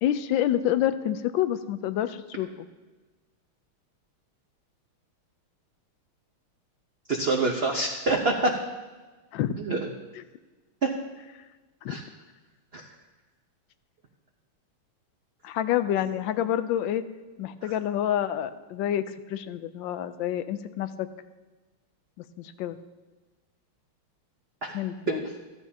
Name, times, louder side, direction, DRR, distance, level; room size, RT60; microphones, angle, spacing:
voice 1, 0.0-2.5 9.3-9.6 11.8-12.0 15.4-17.0 17.4-21.1 22.4-22.8 24.7-25.2, left 11 dB, 75° left, 11 dB, 1.2 m, -28 dB
voice 2, 7.1-8.5 9.6-9.8 11.9-12.0 12.7-12.8 17.6-17.7 24.6-24.7 25.1-25.2, right 2 dB, 60° right, 1 dB, 0.6 m, -26 dB
15.0 x 11.5 x 2.8 m, 1.3 s
omnidirectional pair, 2.3 m